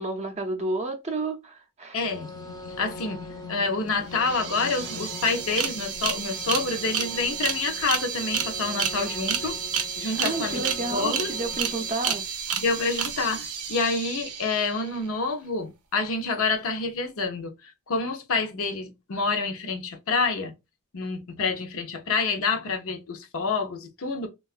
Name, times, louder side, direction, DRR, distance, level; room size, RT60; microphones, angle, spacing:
voice 1, 0.0-2.0 10.1-12.3, right 2 dB, 30° right, 0.5 m, -31 dB
voice 2, 1.9-2.3 2.6-9.5 9.9-10.6 10.9-11.3 12.6-20.5 20.9-24.3, left 4 dB, 65° left, 0.6 m, -28 dB
sound 1, 2.0-11.9, left 2 dB, 15° left, 0.6 m, -42 dB
sound 2, 3.9-4.0 4.1-15.0, right 7 dB, 85° right, 0.5 m, -31 dB
3.5 x 2.3 x 2.4 m
head